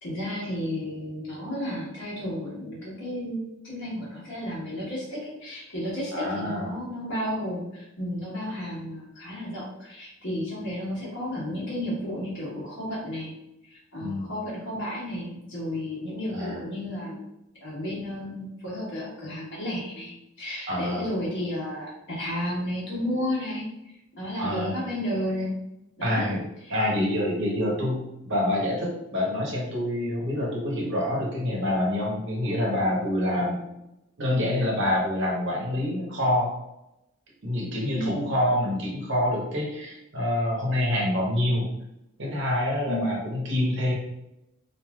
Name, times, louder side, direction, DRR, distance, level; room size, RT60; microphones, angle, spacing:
voice 1, 0.0-13.3 13.7-17.3 17.6-25.5 26.0-26.3 26.6-26.7 37.9-38.2 42.8-43.1, equal, 55° left, -6 dB, 1.2 m, -32 dB
voice 2, 6.1-6.7 14.0-14.3 16.3-16.6 20.7-21.1 24.4-24.7 26.0-26.4 26.7-33.7 34.2-36.5 37.4-41.7 42.2-43.9, left 1 dB, 60° right, -3 dB, 0.9 m, -26 dB
3.1 x 2.6 x 2.3 m, 0.87 s
head